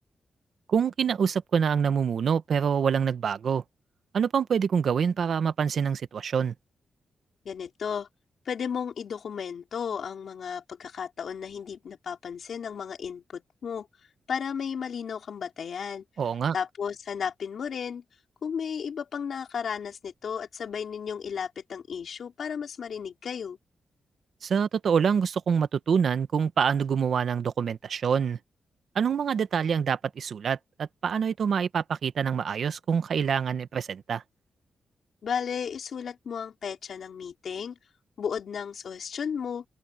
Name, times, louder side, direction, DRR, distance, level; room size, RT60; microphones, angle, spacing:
voice 1, 0.7-3.6 4.1-6.5 16.2-16.5 24.4-28.4 28.9-34.2, right 7 dB, 55° right, 0.9 m, -26 dB
voice 2, 7.4-8.1 8.5-13.9 14.3-16.0 16.5-18.0 18.4-23.6 35.2-37.8 38.2-39.7, left 7 dB, 55° left, 4.3 m, -34 dB
open air
wide cardioid pair, 180°, 0 cm